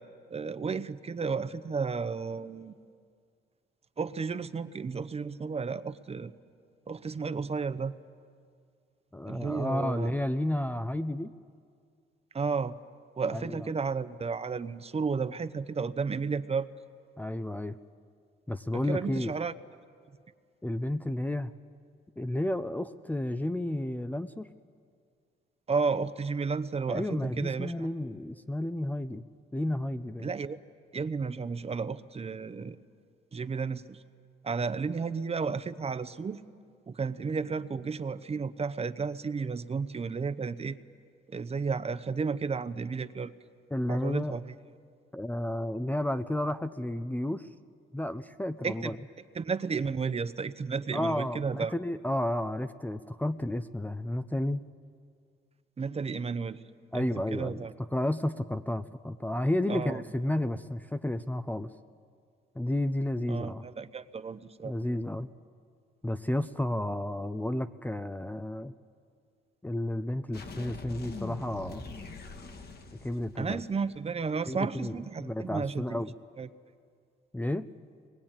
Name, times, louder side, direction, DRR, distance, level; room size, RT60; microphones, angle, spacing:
voice 1, 0.3-2.7 4.0-6.3 6.9-7.9 9.3-10.1 12.3-12.7 13.2-16.7 18.7-19.5 25.7-27.9 30.2-30.6 30.9-32.8 33.3-34.0 34.4-36.4 36.9-40.8 41.3-43.3 43.9-44.5 48.6-48.9 49.3-51.7 55.8-56.6 56.9-57.1 57.3-57.7 59.7-59.9 63.3-64.7 73.4-76.0 76.4-76.5, right 5 dB, 30° right, 13 dB, 0.8 m, -32 dB
voice 2, 9.1-11.3 13.3-13.7 17.2-17.8 18.5-19.3 20.6-21.5 22.2-24.5 26.9-29.2 29.5-30.3 43.7-44.3 45.1-47.5 47.9-49.0 50.9-54.6 56.9-57.6 57.9-61.7 62.6-63.6 64.6-65.3 66.0-68.7 69.6-71.8 73.0-73.6 74.5-76.1 77.3-77.7, left 1 dB, 10° left, 11 dB, 0.6 m, -32 dB
sound 1, 70.3-74.0, left 3 dB, 50° left, 2.2 m, -43 dB
24.0 x 21.0 x 8.9 m, 2.2 s
cardioid pair, 90°, 20 cm